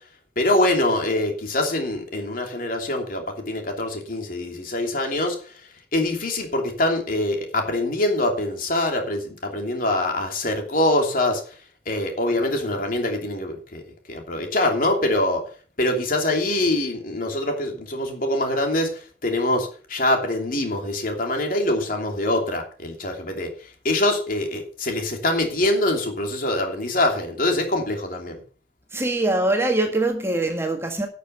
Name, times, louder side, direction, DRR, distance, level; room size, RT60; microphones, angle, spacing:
voice 1, 0.4-5.4 5.9-11.4 11.9-13.8 14.1-15.4 15.8-18.9 19.2-23.5 23.8-28.4, left 1 dB, 50° left, 3.0 m, -24 dB
voice 2, 28.9-31.1, right 2 dB, 15° right, 1.8 m, -23 dB
11.5 x 6.8 x 6.7 m
head